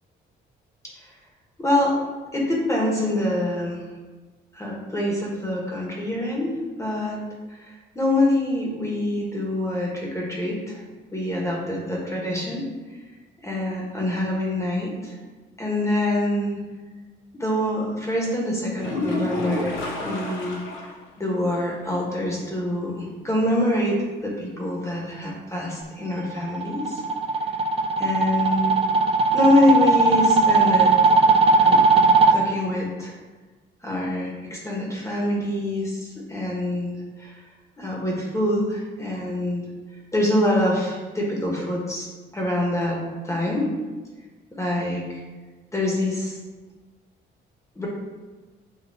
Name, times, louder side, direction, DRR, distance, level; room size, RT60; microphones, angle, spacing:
voice 1, 1.6-2.0 2.3-3.8 4.5-7.2 7.5-10.8 11.1-12.7 13.4-15.2 15.6-16.6 17.4-20.6 21.2-27.0 28.0-28.7 29.3-31.1 31.6-32.0 32.3-33.1 33.8-37.4 37.8-39.7 40.1-42.1 42.3-43.0 43.2-43.7 44.6-45.2 45.7-46.4 47.8-47.9, left 1 dB, 15° left, -3 dB, 1.2 m, -25 dB
sound 1, 18.8-21.0 21.4-21.5 21.9-22.0 25.8-25.9, left 2 dB, 80° left, 0.9 m, -29 dB
sound 2, 26.2-32.3, right 4 dB, 30° right, 0.4 m, -18 dB
6.3 x 2.6 x 2.8 m, 1.3 s
cardioid pair, 90°, 20 cm